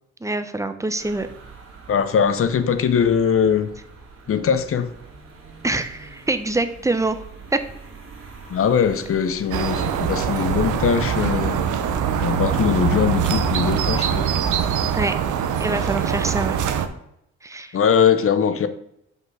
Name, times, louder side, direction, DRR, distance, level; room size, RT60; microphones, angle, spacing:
voice 1, 0.2-1.3 5.6-7.2 7.5-7.6 14.9-15.1 15.6-16.6 17.4-17.8, right 2 dB, 10° right, 10 dB, 0.7 m, -25 dB
sound 1, 1.0-13.5, right 4 dB, 45° right, 2.2 m, -42 dB
voice 2, 1.9-3.7 4.3-4.9 8.5-11.7 12.2-14.3 17.7-18.7, left 7 dB, 45° left, 11 dB, 0.8 m, -21 dB
sound 2, 9.5-16.9, right 8 dB, 80° right, 0.8 m, -23 dB
6.1 x 5.4 x 4.7 m, 0.76 s
cardioid pair, 90°, 30 cm